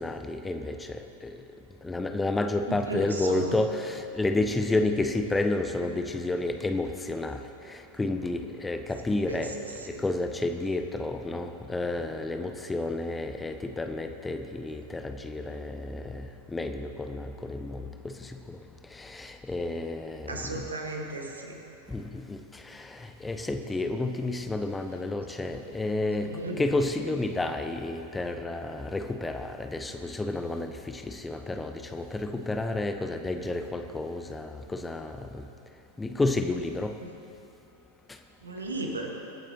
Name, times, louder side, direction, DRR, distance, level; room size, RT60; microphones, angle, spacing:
voice 1, 0.0-1.4 1.8-18.6 18.9-20.7 21.9-35.4 36.0-37.0, left 2 dB, 10° left, 6 dB, 0.6 m, -31 dB
voice 2, 2.7-3.6 9.3-9.5 9.9-10.0 20.3-21.6 26.2-26.6 37.0-37.1 38.4-39.1, right 2 dB, 75° right, 2 dB, 1.5 m, -34 dB
23.5 x 9.2 x 2.9 m, 2.8 s
figure-of-eight pair, 90°, 0 cm